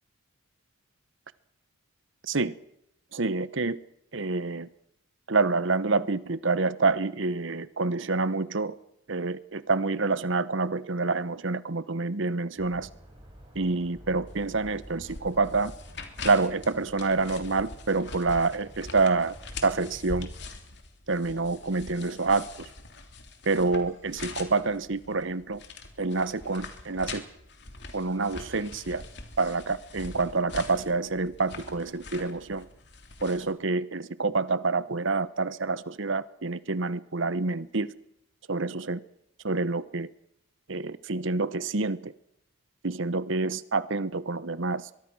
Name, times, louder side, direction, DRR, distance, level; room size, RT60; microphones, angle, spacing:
voice 1, 2.2-2.5 3.1-3.8 4.1-4.7 5.3-8.7 9.1-12.9 13.5-15.7 16.2-19.3 19.6-20.3 21.1-22.7 23.4-25.6 26.0-27.2 27.9-29.0 29.4-32.7 33.2-37.9 38.5-39.0 39.4-40.1 40.7-42.1 42.8-44.9, right 3 dB, 65° right, 16 dB, 1.0 m, -27 dB
sound 1, 12.6-20.2, equal, 25° right, 7.6 m, -50 dB
sound 2, 14.3-33.5, left 3 dB, 55° left, 3.1 m, -43 dB
23.5 x 22.5 x 6.3 m, 0.81 s
head